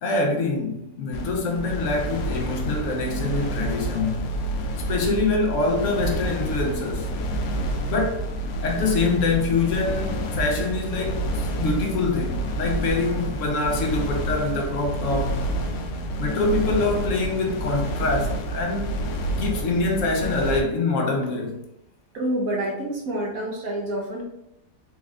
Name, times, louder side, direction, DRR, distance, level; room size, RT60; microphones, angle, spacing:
voice 1, 0.0-4.3 4.9-7.1 7.9-8.2 8.6-15.4 16.2-18.9 19.4-21.6, left 3 dB, 65° left, 0.8 m, -25 dB
sound 1, 1.1-20.6, right 1 dB, 85° left, 1.2 m, -28 dB
voice 2, 22.1-24.2, right 1 dB, 65° right, 1.1 m, -27 dB
4.3 x 2.4 x 3.2 m
omnidirectional pair, 1.7 m